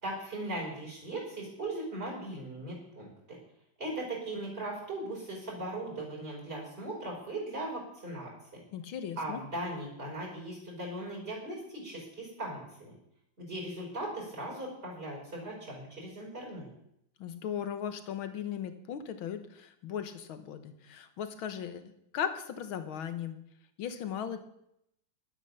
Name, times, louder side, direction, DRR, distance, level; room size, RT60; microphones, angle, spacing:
voice 1, 0.0-3.4 3.8-8.6 9.2-12.9 13.4-16.7, right 1 dB, 30° right, -3 dB, 5.4 m, -39 dB
voice 2, 8.7-9.4 17.2-23.4 23.8-24.4, left 8 dB, 85° left, 10 dB, 2.0 m, -37 dB
12.0 x 9.1 x 7.1 m, 0.76 s
omnidirectional pair, 2.2 m